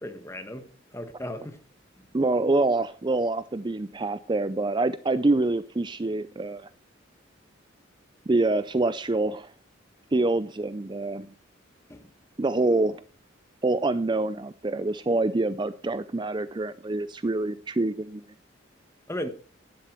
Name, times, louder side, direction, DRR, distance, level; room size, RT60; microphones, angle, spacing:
voice 1, 0.0-1.6 11.9-12.1 19.1-19.3, left 1 dB, 15° left, 8 dB, 1.5 m, -36 dB
voice 2, 2.1-6.7 8.3-9.5 10.1-11.3 12.4-13.0 13.6-18.2, right 2 dB, 25° right, 14 dB, 0.4 m, -26 dB
12.0 x 10.5 x 4.5 m, 0.41 s
head